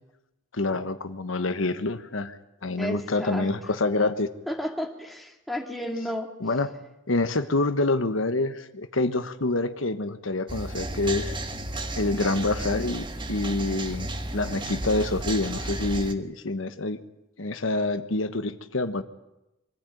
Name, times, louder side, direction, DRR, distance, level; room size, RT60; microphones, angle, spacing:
voice 1, 0.5-4.3 6.4-6.7 7.1-11.3 12.0-17.0 17.4-19.0, left 2 dB, 85° left, 10 dB, 1.2 m, -27 dB
voice 2, 2.8-3.5 4.5-6.3, equal, ahead, 2 dB, 2.2 m, -32 dB
sound 1, 10.5-16.1, right 2 dB, 25° right, 1.4 m, -33 dB
24.0 x 14.5 x 9.2 m, 0.93 s
head